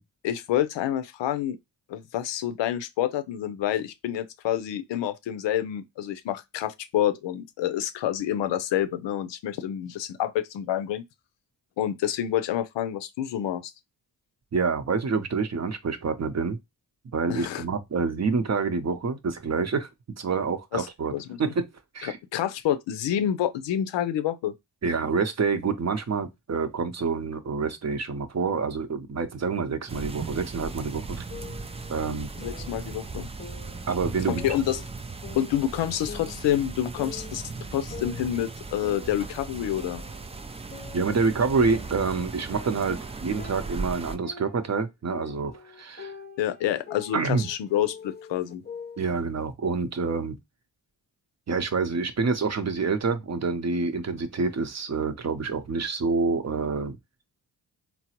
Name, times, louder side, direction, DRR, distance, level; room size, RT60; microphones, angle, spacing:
voice 1, 0.2-1.6 1.9-11.0 11.8-13.7 17.3-17.6 20.7-20.9 21.1-21.4 22.0-24.5 32.4-33.3 34.3-34.8 35.3-37.4 37.7-40.0 46.4-48.6, left 11 dB, 75° left, 0.6 m, -28 dB
voice 2, 14.5-16.6 17.1-19.9 20.2-21.1 21.4-21.7 21.9-22.2 24.8-31.2 31.9-32.3 33.9-34.5 40.9-46.1 47.1-47.5 49.0-50.4 51.5-57.0, right 4 dB, 35° right, 0.7 m, -27 dB
sound 1, 29.9-44.2, right 4 dB, 15° right, 0.3 m, -38 dB
sound 2, 31.3-33.0 33.4-35.0 35.2-37.5 37.9-40.3 40.7-44.8 45.1-49.1, left 5 dB, 20° left, 0.6 m, -45 dB
3.8 x 2.0 x 2.8 m
supercardioid pair, 40°, 44 cm